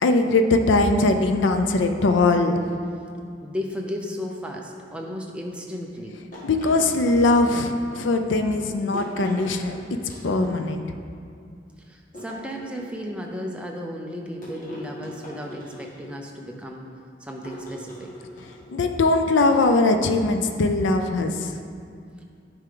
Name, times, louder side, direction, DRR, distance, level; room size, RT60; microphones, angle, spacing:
voice 1, 0.0-2.6 6.4-9.8 10.2-10.8 18.7-21.5, left 2 dB, 75° left, 6 dB, 0.5 m, -21 dB
voice 2, 3.4-6.2 11.9-16.9 17.2-18.1, equal, 5° right, 0 dB, 0.6 m, -34 dB
sound 1, 6.3-7.7 8.9-9.6 10.0-10.7 12.1-13.1 14.4-16.2 17.4-18.7, left 1 dB, 45° left, 1.9 m, -40 dB
9.7 x 4.7 x 3.8 m, 2.3 s
head